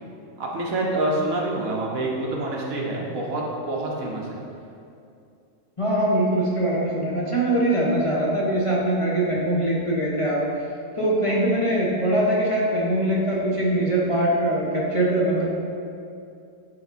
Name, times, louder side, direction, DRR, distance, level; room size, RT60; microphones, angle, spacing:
voice 1, 0.4-4.4, right 2 dB, 80° right, -2 dB, 1.5 m, -27 dB
voice 2, 5.8-10.4 11.0-15.5, right 1 dB, 25° left, -6 dB, 1.1 m, -22 dB
10.5 x 3.6 x 4.2 m, 2.5 s
omnidirectional pair, 1.4 m